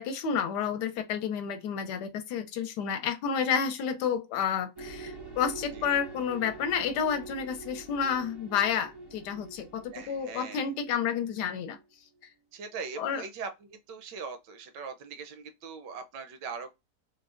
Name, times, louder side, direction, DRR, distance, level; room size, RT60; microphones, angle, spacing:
voice 1, 0.0-11.8 13.0-13.2, left 7 dB, 75° left, 1.1 m, -30 dB
sound 1, 4.8-11.8, right 3 dB, 25° right, 0.5 m, -45 dB
voice 2, 9.9-10.7 12.5-16.8, right 5 dB, 80° right, 1.3 m, -41 dB
3.8 x 2.1 x 2.4 m
omnidirectional pair, 1.9 m